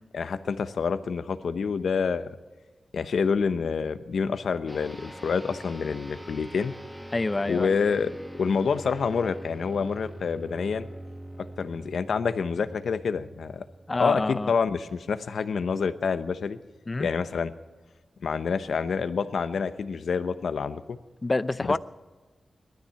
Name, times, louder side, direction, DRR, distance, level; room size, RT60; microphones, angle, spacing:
voice 1, 0.1-2.3 2.9-6.7 7.5-8.1 8.4-10.9 11.6-13.7 14.0-16.6 17.0-17.5 18.2-21.0 21.6-21.7, left 5 dB, 85° left, 0.9 m, -27 dB
sound 1, 4.7-14.4, right 1 dB, ahead, 1.1 m, -43 dB
voice 2, 7.1-7.7 13.9-14.5 16.9-17.1 21.2-21.8, left 2 dB, 30° left, 0.5 m, -27 dB
19.0 x 13.0 x 5.8 m
wide cardioid pair, 105°, 0 cm